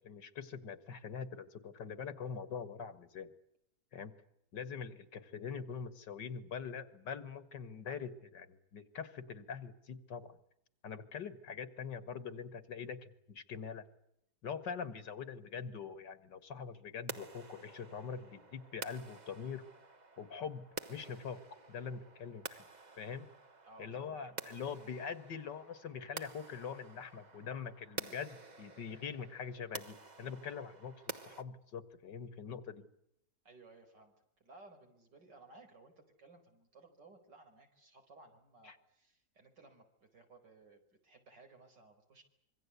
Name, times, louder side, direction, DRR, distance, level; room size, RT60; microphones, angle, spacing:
voice 1, 0.0-3.3 3.9-4.1 4.5-10.3 10.8-13.9 14.4-19.7 20.2-21.4 21.7-22.7 23.0-23.3 23.8-32.8 38.6-38.8, left 6 dB, 85° left, 13 dB, 2.4 m, -43 dB
sound 1, 17.1-31.4, right 3 dB, 25° right, 1.3 m, -50 dB
voice 2, 23.6-24.6 33.5-34.1 34.4-42.2, right 3 dB, 80° right, 5 dB, 5.4 m, -59 dB
26.0 x 23.5 x 8.2 m, 0.78 s
omnidirectional pair, 1.8 m